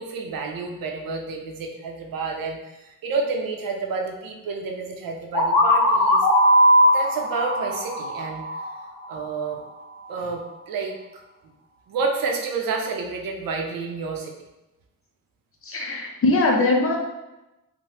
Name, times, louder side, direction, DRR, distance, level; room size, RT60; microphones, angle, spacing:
voice 1, 0.0-6.2 6.9-8.6 9.1-9.6 10.1-11.0 11.9-14.3, right 4 dB, 90° right, 2 dB, 0.6 m, -29 dB
sound 1, 5.3-9.1, equal, 85° left, 0.8 m, -19 dB
voice 2, 15.6-17.0, left 2 dB, 40° left, 1 dB, 0.5 m, -21 dB
3.2 x 2.1 x 2.7 m, 1.0 s
wide cardioid pair, 130°, 33 cm